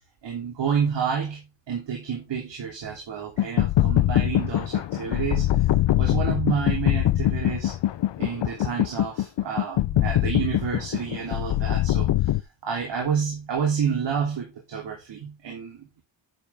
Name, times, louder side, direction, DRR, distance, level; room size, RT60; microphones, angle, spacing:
voice 1, 0.2-5.6 6.0-7.7 8.2-12.1 12.6-16.0, right 7 dB, 65° right, 3.1 m, -29 dB
sound 1, 3.4-12.4, left 13 dB, 65° left, 0.8 m, -23 dB
10.5 x 6.8 x 3.5 m
wide cardioid pair, 145°, 46 cm